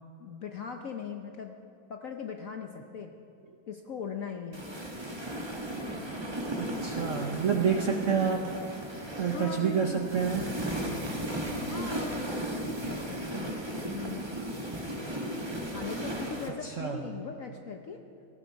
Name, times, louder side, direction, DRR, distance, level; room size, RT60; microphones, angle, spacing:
voice 1, 0.2-1.6 1.9-3.1 3.7-4.7 9.2-10.0 11.1-13.6 13.9-14.2 15.7-18.0, left 5 dB, 60° left, 4 dB, 0.9 m, -40 dB
sound 1, 4.5-16.5, right 1 dB, 15° right, 1.1 m, -35 dB
voice 2, 6.6-8.6 9.2-10.4 16.6-17.0, right 7 dB, 60° right, 4 dB, 0.8 m, -28 dB
17.5 x 14.5 x 4.7 m, 2.7 s
omnidirectional pair, 2.2 m